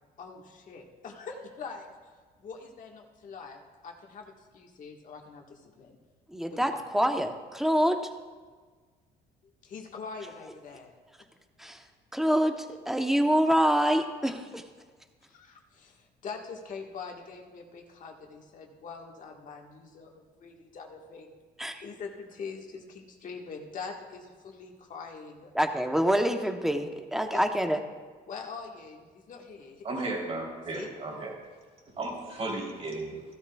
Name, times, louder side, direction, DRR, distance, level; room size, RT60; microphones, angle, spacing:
voice 1, 0.2-2.0 2.4-6.0 6.5-6.8 9.6-10.9 15.3-21.3 21.8-25.5 27.3-27.4 28.3-29.9 30.7-30.9, left 5 dB, 50° left, 1 dB, 1.6 m, -43 dB
voice 2, 6.3-8.0 11.6-11.8 12.1-14.6 21.6-21.8 25.5-27.8, equal, ahead, 6 dB, 0.9 m, -26 dB
voice 3, 29.8-31.3 31.9-33.2, right 2 dB, 35° right, -1 dB, 3.4 m, -34 dB
15.5 x 12.5 x 2.3 m, 1.5 s
cardioid pair, 110°, 17 cm